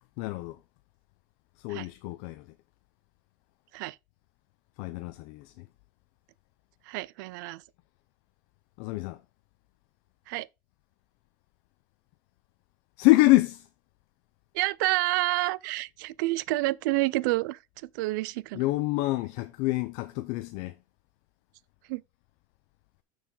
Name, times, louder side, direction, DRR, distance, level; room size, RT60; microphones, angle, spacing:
voice 1, 0.2-0.6 1.6-2.4 4.8-5.5 8.8-9.2 13.0-13.6 18.5-20.7, left 19 dB, 70° left, 0.6 m, -26 dB
voice 2, 6.9-7.6 10.3-10.5 14.5-17.6 17.9-18.6 21.9-22.0, right 19 dB, 90° right, 0.5 m, -28 dB
6.6 x 6.2 x 3.9 m
cardioid pair, 145°, 10 cm